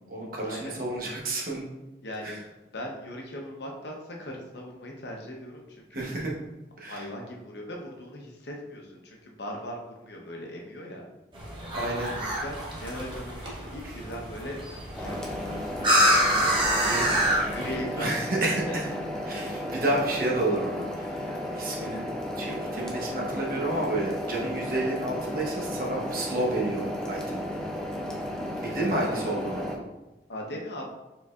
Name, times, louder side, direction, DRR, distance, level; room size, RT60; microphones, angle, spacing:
voice 1, 0.0-1.6 2.2-2.4 5.9-6.3 6.8-7.0 11.7-12.2 18.0-18.8 19.3-22.1 22.4-27.4 28.6-29.7, right 2 dB, 55° right, -2 dB, 1.0 m, -30 dB
voice 2, 2.0-2.5 2.7-6.1 6.9-11.0 12.2-18.4 18.7-19.0 28.8-29.3 30.3-30.9, equal, 75° left, 0 dB, 0.8 m, -39 dB
sound 1, 11.3-17.8, equal, 25° right, 0.9 m, -27 dB
sound 2, 14.9-29.8, left 1 dB, 5° left, 0.5 m, -34 dB
4.5 x 4.0 x 2.4 m, 1.0 s
head